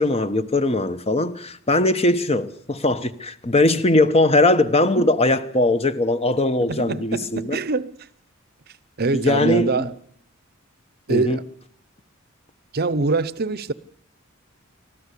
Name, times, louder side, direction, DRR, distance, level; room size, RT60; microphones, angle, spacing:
voice 1, 0.0-7.6 9.1-9.9 11.1-11.4, left 2 dB, 30° left, 1.1 m, -20 dB
voice 2, 6.6-7.9 9.0-9.9 11.1-11.4 12.7-13.7, right 3 dB, 45° right, 0.8 m, -24 dB
24.0 x 14.0 x 8.3 m
head